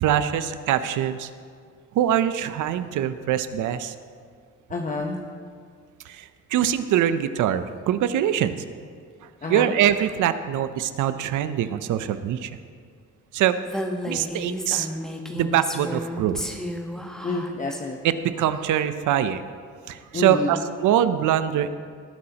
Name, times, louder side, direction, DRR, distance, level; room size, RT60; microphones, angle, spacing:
voice 1, 0.0-1.3 1.9-3.9 6.1-8.5 9.5-12.5 13.3-13.6 14.1-14.9 15.3-16.4 18.0-19.4 19.9-21.7, right 10 dB, 80° right, 12 dB, 0.7 m, -23 dB
voice 2, 4.7-5.2 9.4-9.7 17.2-18.0 20.1-20.6, left 2 dB, 25° left, 1 dB, 0.9 m, -28 dB
Female speech woman speaking, 13.7-17.8, equal, ahead, 1.1 m, -32 dB
19.0 x 9.7 x 2.9 m, 2.1 s
cardioid pair, 90°, 30 cm